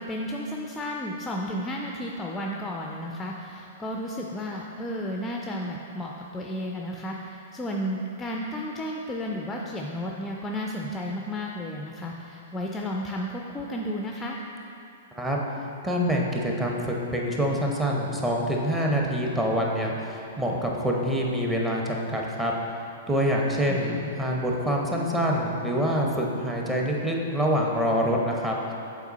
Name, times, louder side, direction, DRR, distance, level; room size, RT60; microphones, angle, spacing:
voice 1, 0.0-14.4 23.7-24.0, equal, 10° left, -1 dB, 0.4 m, -33 dB
voice 2, 15.8-22.5 23.1-28.7, equal, 10° right, -1 dB, 0.8 m, -26 dB
7.1 x 4.0 x 4.0 m, 2.8 s
figure-of-eight pair, 110°, 0 cm